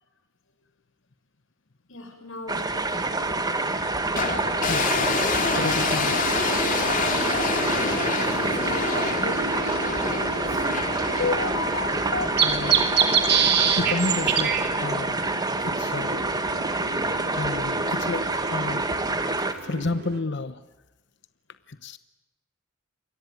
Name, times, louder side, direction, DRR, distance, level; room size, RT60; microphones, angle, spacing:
voice 1, 1.9-3.6 7.6-10.7, left 1 dB, 85° left, 5 dB, 6.8 m, -42 dB
sound 1, 2.5-19.5, right 2 dB, 20° right, 1.9 m, -27 dB
sound 2, 2.9-20.2, right 6 dB, 55° right, 3.1 m, -30 dB
sound 3, 4.2-15.4, left 4 dB, 45° left, 3.6 m, -29 dB
voice 2, 4.7-5.3 5.5-6.3 9.2-9.3 11.2-12.9 13.7-15.2 15.6-16.2 17.3-18.9 19.6-20.6 21.7-22.0, left 3 dB, 60° left, 13 dB, 1.0 m, -31 dB
28.0 x 22.5 x 9.5 m, 1.1 s
head